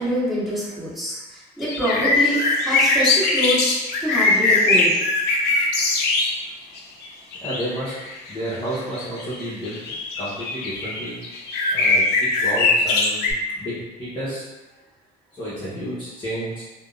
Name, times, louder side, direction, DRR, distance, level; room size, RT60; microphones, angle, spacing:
voice 1, 0.0-3.7 4.0-4.9, equal, ahead, -11 dB, 1.4 m, -25 dB
sound 1, 1.6-6.3 6.7-13.3, left 3 dB, 80° left, 0.5 m, -21 dB
voice 2, 7.4-7.9 8.3-9.8 10.2-11.2 11.7-12.0 12.4-13.3 13.6-14.4 15.4-16.6, equal, 30° left, -9 dB, 0.8 m, -30 dB
3.4 x 2.0 x 2.4 m, 1.1 s
cardioid pair, 110°, 17 cm